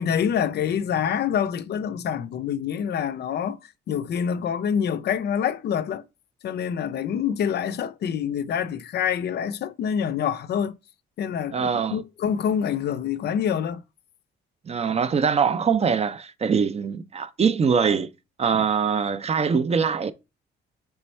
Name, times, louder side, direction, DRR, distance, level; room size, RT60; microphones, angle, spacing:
voice 1, 0.0-3.6 3.9-6.0 6.4-10.8 11.2-13.8, left 8 dB, 55° left, 0.4 m, -26 dB
voice 2, 11.5-12.0 14.7-18.1 18.4-20.1, right 6 dB, 30° right, 0.4 m, -23 dB
3.4 x 3.1 x 4.3 m
cardioid pair, 90°, 20 cm